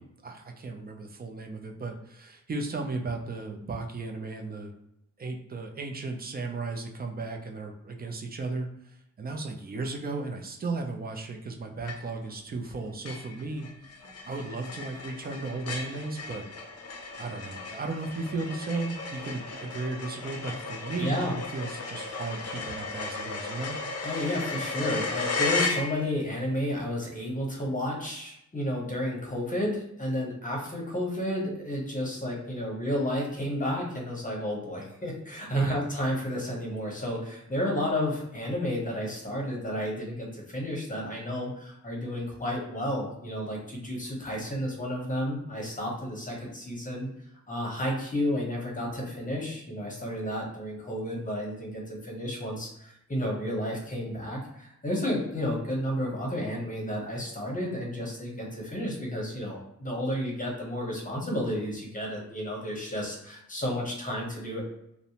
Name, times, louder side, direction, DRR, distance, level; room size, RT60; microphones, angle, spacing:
voice 1, 0.0-4.7 5.2-16.5 17.2-21.2 21.5-23.8 35.5-35.8, right 3 dB, 30° right, 3 dB, 0.4 m, -35 dB
sound 1, 11.9-12.3 12.7-12.8 13.1-26.3, left 3 dB, 50° left, 0.5 m, -35 dB
voice 2, 21.0-21.3 24.0-47.1 47.5-64.6, equal, 25° left, -2 dB, 0.8 m, -32 dB
2.6 x 2.0 x 2.8 m, 0.79 s
cardioid pair, 85°, 31 cm